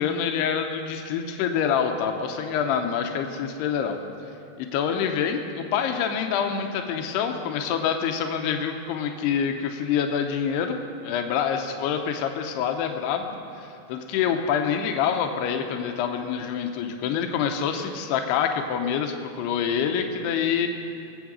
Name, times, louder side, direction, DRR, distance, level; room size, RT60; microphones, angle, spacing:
voice 1, 0.0-4.0 4.6-10.8 11.0-13.3 13.6-20.7, left 7 dB, 90° left, 5 dB, 2.9 m, -26 dB
22.5 x 8.1 x 6.3 m, 2.7 s
omnidirectional pair, 4.7 m